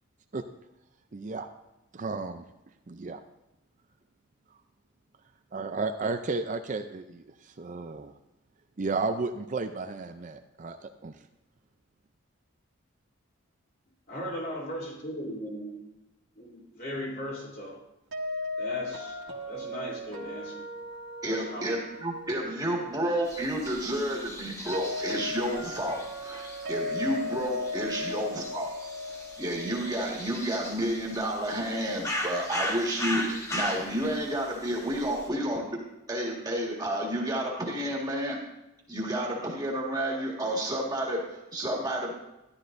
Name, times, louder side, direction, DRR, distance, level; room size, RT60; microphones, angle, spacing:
voice 1, 1.1-1.5 1.9-2.4 2.9-3.2 5.5-8.1 8.8-11.1, right 3 dB, 35° right, 7 dB, 0.5 m, -33 dB
voice 2, 14.1-15.8 16.4-17.8 18.6-19.2 19.5-20.7 21.3-21.8, equal, 45° left, -3 dB, 3.5 m, -37 dB
sound 1, 18.1-31.0, left 2 dB, 60° right, 1.7 m, -37 dB
voice 3, 21.2-28.7 29.4-35.7 36.1-38.4 38.9-42.1, right 1 dB, 20° right, -2 dB, 1.8 m, -30 dB
sound 2, 23.3-35.3, left 1 dB, 15° left, 1.2 m, -38 dB
14.0 x 11.5 x 2.6 m, 0.94 s
head